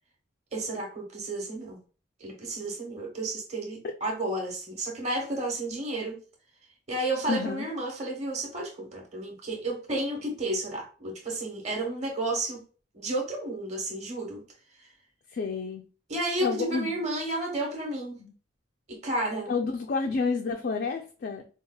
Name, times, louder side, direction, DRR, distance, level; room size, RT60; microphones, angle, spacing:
voice 1, 0.5-1.8 2.2-6.2 6.9-12.6 12.9-14.4 14.8-14.9 16.1-18.2 18.9-19.5, right 2 dB, 35° right, 1.1 m, -32 dB
voice 2, 7.3-7.6 15.3-15.8 16.4-16.9 18.2-18.3 19.5-21.4, left 4 dB, 55° left, 0.3 m, -29 dB
4.6 x 2.3 x 2.2 m
head